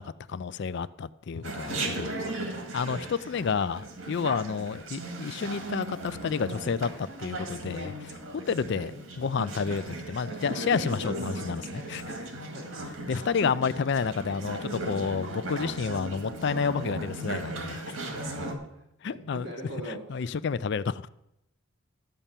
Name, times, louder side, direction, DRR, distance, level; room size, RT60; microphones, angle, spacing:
voice 1, 0.0-2.1 2.7-8.2 8.5-8.9 9.2-12.2 13.1-18.0 19.0-19.5 19.9-21.1, left 5 dB, 55° left, 0.4 m, -30 dB
Chatter, 1.4-18.5, right 2 dB, 90° right, 2.0 m, -37 dB
voice 2, 1.6-1.9 8.7-8.9 12.4-12.7 18.1-18.8 19.1-20.3, equal, 55° right, 4.4 m, -40 dB
12.5 x 5.5 x 8.9 m
head